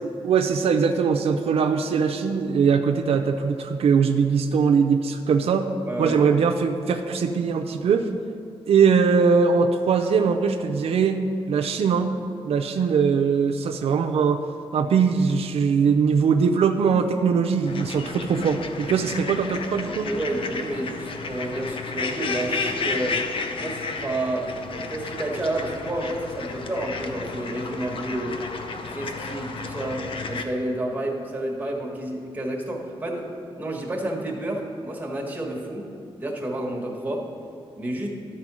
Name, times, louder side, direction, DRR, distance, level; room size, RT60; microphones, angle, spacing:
voice 1, 0.0-5.7 6.0-8.1 8.7-12.2 12.4-14.4 14.7-20.1, right 6 dB, 85° right, 5 dB, 0.5 m, -21 dB
voice 2, 5.9-6.2 19.9-23.2 23.6-24.5 24.9-28.4 28.9-33.3 33.6-35.9 36.2-37.3 37.8-38.1, right 1 dB, 15° right, -2 dB, 1.5 m, -30 dB
sound 1, 17.7-30.4, left 4 dB, 60° left, 0.6 m, -32 dB
12.0 x 4.4 x 6.1 m, 2.6 s
wide cardioid pair, 120°, 10 cm